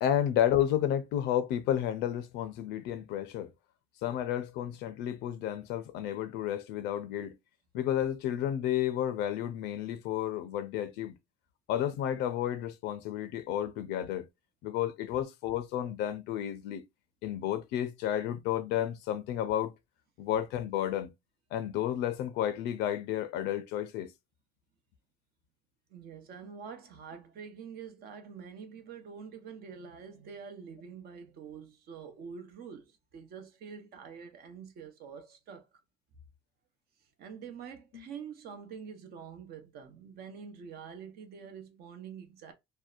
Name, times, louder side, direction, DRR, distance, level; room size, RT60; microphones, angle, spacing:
voice 1, 0.0-3.5 4.0-7.4 7.7-11.2 11.7-14.3 14.6-16.8 17.2-19.7 20.2-21.1 21.5-24.1 37.9-38.0, left 11 dB, 90° left, 0.5 m, -31 dB
voice 2, 25.9-35.7 37.2-42.5, right 6 dB, 65° right, 0.8 m, -46 dB
2.7 x 2.1 x 2.3 m
cardioid pair, 110°, 17 cm